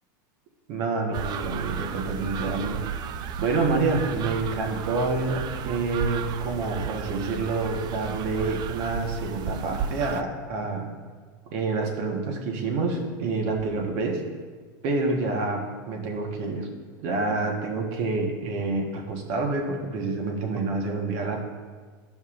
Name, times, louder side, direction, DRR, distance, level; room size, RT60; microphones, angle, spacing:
voice 1, 0.7-2.8 3.4-10.9 11.5-14.2 14.8-16.7 17.0-21.4, right 3 dB, 60° right, 2 dB, 1.5 m, -27 dB
sound 1, 1.1-10.2, right 7 dB, 40° right, 0.4 m, -33 dB
14.0 x 5.3 x 2.6 m, 1.5 s
supercardioid pair, 115°, 11 cm